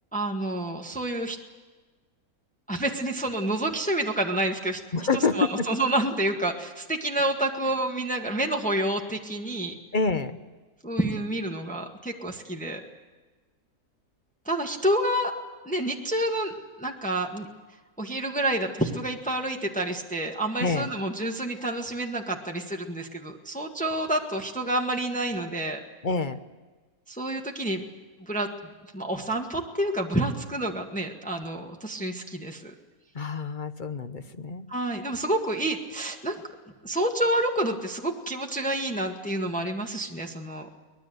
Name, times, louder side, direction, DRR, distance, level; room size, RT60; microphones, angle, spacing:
voice 1, 0.1-1.4 2.7-4.8 5.1-9.8 10.8-12.8 14.4-15.3 15.6-17.5 18.0-25.8 27.1-27.8 28.2-28.5 28.9-32.7 34.7-36.4 36.8-40.7, right 1 dB, 5° left, 2 dB, 1.7 m, -28 dB
voice 2, 4.9-5.7 9.9-10.4 20.6-20.9 26.0-26.4 33.1-34.7, left 4 dB, 35° left, 10 dB, 1.0 m, -27 dB
24.0 x 20.0 x 8.0 m, 1.3 s
omnidirectional pair, 1.6 m